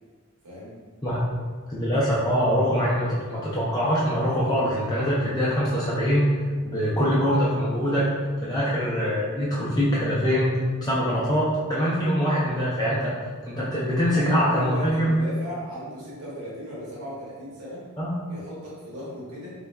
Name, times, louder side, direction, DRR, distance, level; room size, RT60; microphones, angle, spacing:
voice 1, 1.7-8.1 8.4-10.5 10.8-13.1 13.5-15.1 18.0-18.1, equal, 15° left, -7 dB, 0.4 m, -23 dB
voice 2, 14.1-17.8 18.3-19.5, equal, 85° right, -7 dB, 1.3 m, -36 dB
3.8 x 3.4 x 2.2 m, 1.5 s
head